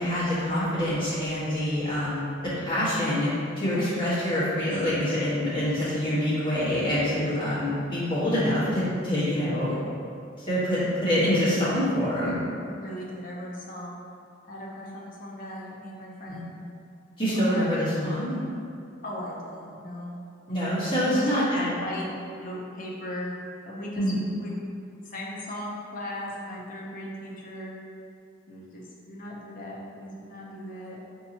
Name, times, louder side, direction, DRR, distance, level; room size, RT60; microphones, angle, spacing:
voice 1, 0.0-3.3 3.6-9.8 10.4-12.3 16.3-16.4 17.2-18.4 20.5-21.7 24.0-24.2, left 1 dB, 25° left, -12 dB, 1.4 m, -26 dB
voice 2, 3.7-4.7 12.6-14.1 14.5-16.6 17.3-17.9 19.0-20.2 21.1-21.5 21.8-22.1 22.4-23.3 23.7-24.0 24.4-24.6 25.0-27.8 28.5-31.0, left 1 dB, 45° left, -3 dB, 0.6 m, -38 dB
4.5 x 2.8 x 2.8 m, 2.5 s
head